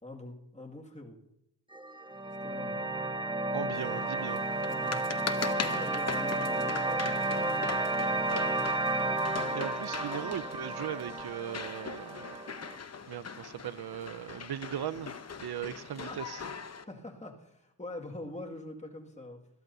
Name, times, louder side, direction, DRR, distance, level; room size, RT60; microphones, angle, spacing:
voice 1, 0.0-1.2 2.4-2.8 4.7-5.1 5.4-8.8 16.1-16.2 16.9-19.4, left 2 dB, 15° left, 0 dB, 2.1 m, -44 dB
sound 1, 1.7-12.8, right 2 dB, 10° right, 1.1 m, -32 dB
voice 2, 3.5-4.5 9.5-12.4 13.1-15.1 15.4-16.4, right 10 dB, 65° right, 16 dB, 0.6 m, -38 dB
sound 2, 3.7-16.8, left 5 dB, 40° left, 0.9 m, -41 dB
21.0 x 13.5 x 2.7 m, 0.81 s
wide cardioid pair, 105°, 42 cm